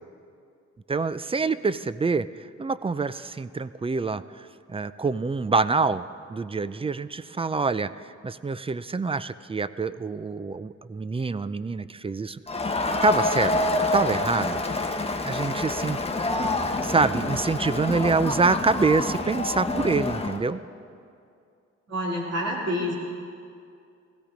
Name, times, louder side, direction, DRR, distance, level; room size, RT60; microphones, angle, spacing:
voice 1, 0.9-6.0 6.3-12.4 13.0-13.5 13.9-14.9 15.2-16.0 16.8-20.6, right 4 dB, 20° right, 15 dB, 0.4 m, -26 dB
Crowd, 12.5-20.4, left 2 dB, 20° left, 1.0 m, -27 dB
voice 2, 21.9-22.9, equal, 60° right, -5 dB, 2.8 m, -27 dB
16.5 x 15.0 x 5.1 m, 2.4 s
cardioid pair, 100°, 29 cm